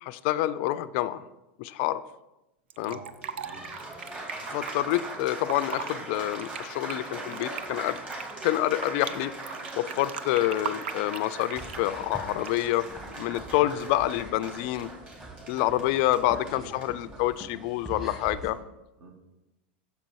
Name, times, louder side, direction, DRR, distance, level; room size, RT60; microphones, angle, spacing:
voice 1, 0.0-1.2 1.6-2.0 2.8-3.0 4.5-8.0 8.4-9.3 9.7-12.9 13.1-14.9 15.5-18.6, left 15 dB, 60° left, 15 dB, 0.3 m, -27 dB
voice 2, 2.7-3.8 9.0-9.2 13.4-13.7 15.6-16.0 16.5-16.7 19.0-19.1, right 3 dB, 60° right, 2 dB, 1.8 m, -47 dB
Fill (with liquid), 2.7-4.7 5.3-5.9 6.3-9.1 9.5-11.9 12.4-12.8, right 8 dB, 80° right, 0.4 m, -38 dB
Applause, 3.1-17.8, right 2 dB, 25° right, 2.4 m, -40 dB
sound 1, 11.5-18.5, right 1 dB, 5° right, 1.3 m, -45 dB
6.8 x 5.2 x 4.6 m, 0.97 s
hypercardioid pair, 105°, 6 cm